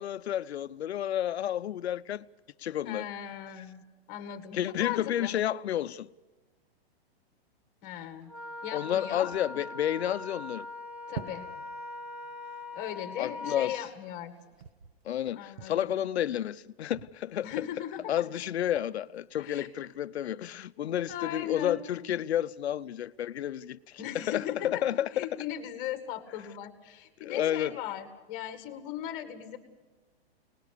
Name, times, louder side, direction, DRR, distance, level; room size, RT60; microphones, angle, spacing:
voice 1, 0.0-2.2 2.6-3.1 4.5-6.1 8.7-10.7 13.2-13.8 15.0-17.5 18.1-25.3 27.2-27.8, left 11 dB, 90° left, 0.7 m, -31 dB
voice 2, 2.8-3.8 4.1-5.4 7.8-8.3 8.6-9.3 11.1-11.5 12.7-14.3 15.3-16.0 17.4-18.2 19.4-19.7 21.1-21.8 24.0-24.8 25.1-29.6, left 11 dB, 25° left, 2.0 m, -38 dB
Wind instrument woodwind instrument, 8.3-13.8, left 2 dB, 5° right, 1.2 m, -41 dB
sound 1, 8.8-18.1 18.7-19.3 19.7-19.8 22.6-23.5 26.0-26.3 27.5-27.6, right 9 dB, 75° right, 1.3 m, -50 dB
23.5 x 20.0 x 6.7 m
hypercardioid pair, 165°, 31 cm